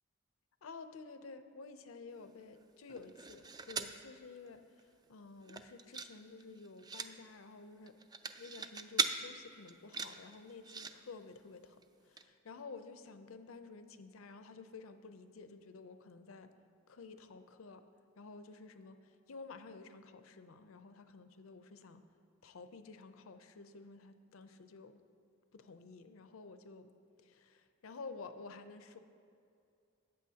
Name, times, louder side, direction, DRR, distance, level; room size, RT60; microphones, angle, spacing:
voice 1, 0.6-8.0 8.4-16.5 16.9-17.8 18.2-22.0 22.4-25.0 25.5-26.9 27.2-29.0, left 4 dB, 75° left, 9 dB, 0.6 m, -52 dB
sound 1, 2.9-4.0 4.5-4.6 4.8-5.1 5.4-6.1 6.4-7.1 7.9-9.1 9.7-10.9 11.8-11.9 12.2-12.3, right 5 dB, 20° right, 0.3 m, -39 dB
14.0 x 8.8 x 2.8 m, 2.4 s
head